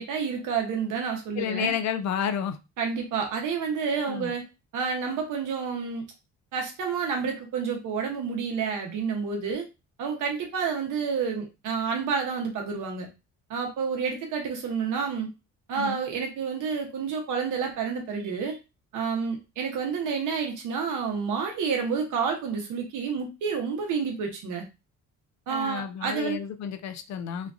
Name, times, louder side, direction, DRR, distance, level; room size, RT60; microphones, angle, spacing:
voice 1, 0.0-1.7 2.8-4.4 4.7-6.0 6.5-9.6 10.0-13.1 13.5-15.3 15.7-18.6 18.9-24.6 25.5-26.4, right 6 dB, 80° right, 2 dB, 1.0 m, -29 dB
voice 2, 1.3-2.6 4.1-4.3 15.7-16.0 25.5-27.5, left 8 dB, 65° left, 10 dB, 0.5 m, -31 dB
3.0 x 2.3 x 2.5 m, 0.27 s
cardioid pair, 90°, 30 cm